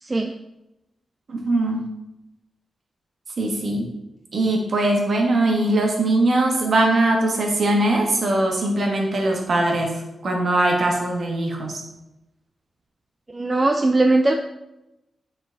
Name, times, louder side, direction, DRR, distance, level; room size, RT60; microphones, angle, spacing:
voice 1, 0.0-0.3 13.3-14.3, right 2 dB, 20° right, 3 dB, 0.4 m, -19 dB
voice 2, 1.3-1.9 3.4-3.9 4.3-9.9 10.2-11.7, right 2 dB, 50° right, 0 dB, 1.4 m, -21 dB
9.1 x 3.9 x 3.9 m, 0.92 s
wide cardioid pair, 175°, 0 cm